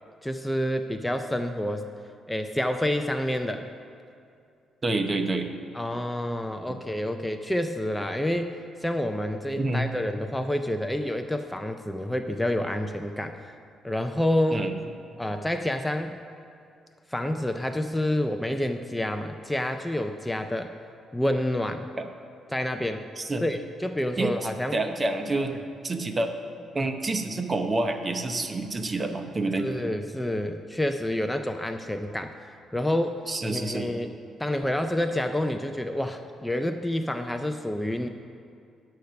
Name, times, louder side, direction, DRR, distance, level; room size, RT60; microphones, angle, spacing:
voice 1, 0.2-1.9 2.3-3.6 5.7-13.5 13.8-14.7 15.2-16.2 17.1-20.7 21.1-21.9 22.5-23.0 23.4-24.8 29.6-34.1 34.4-38.1, left 1 dB, 5° left, 6 dB, 0.4 m, -28 dB
voice 2, 4.8-5.5 9.6-9.9 14.5-14.7 22.0-22.1 23.2-23.4 24.2-24.3 24.7-25.5 25.8-26.3 26.7-29.7 33.3-33.9, right 2 dB, 30° right, 6 dB, 0.8 m, -27 dB
10.5 x 6.6 x 5.7 m, 2.5 s
cardioid pair, 90°, 0 cm